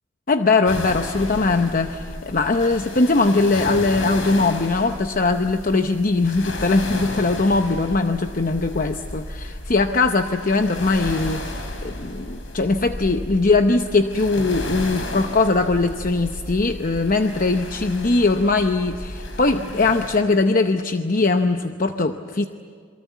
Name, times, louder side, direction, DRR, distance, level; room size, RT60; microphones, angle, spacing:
voice 1, 0.3-22.5, left 3 dB, 45° left, 7 dB, 0.8 m, -20 dB
sound 1, 0.7-20.2, left 1 dB, 80° left, 4.3 m, -33 dB
28.0 x 23.0 x 8.3 m, 2.1 s
head